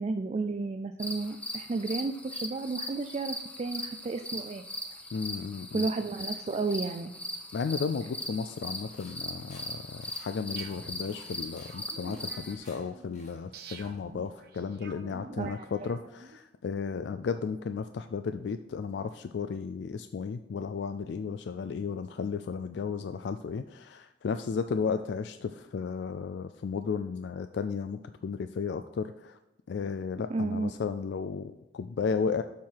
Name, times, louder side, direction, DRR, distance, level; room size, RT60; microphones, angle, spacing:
voice 1, 0.0-4.6 5.7-7.1 15.4-15.7 30.3-30.7, right 3 dB, 35° right, 8 dB, 0.3 m, -32 dB
sound 1, 1.0-12.5, left 1 dB, 5° left, 0.7 m, -40 dB
voice 2, 5.1-5.9 7.5-29.4 29.7-32.4, left 5 dB, 65° left, 10 dB, 0.3 m, -34 dB
sound 2, 8.6-14.4, left 3 dB, 40° left, 1.5 m, -57 dB
sound 3, 10.6-16.4, right 4 dB, 55° right, 0.9 m, -49 dB
7.4 x 5.7 x 4.6 m, 0.94 s
head